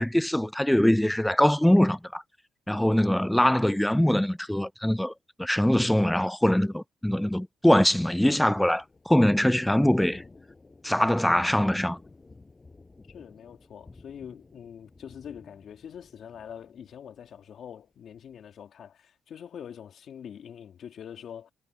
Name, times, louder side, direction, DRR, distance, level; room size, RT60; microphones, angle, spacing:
voice 1, 0.0-2.2 2.7-5.1 5.4-10.2 10.8-12.0, left 1 dB, 5° left, 0.4 m, -23 dB
Thunder / Rain, 8.0-17.7 18.1-18.3, left 3 dB, 25° left, 5.7 m, -52 dB
voice 2, 13.1-21.5, left 8 dB, 60° left, 3.3 m, -44 dB
cardioid pair, 90°, 0 cm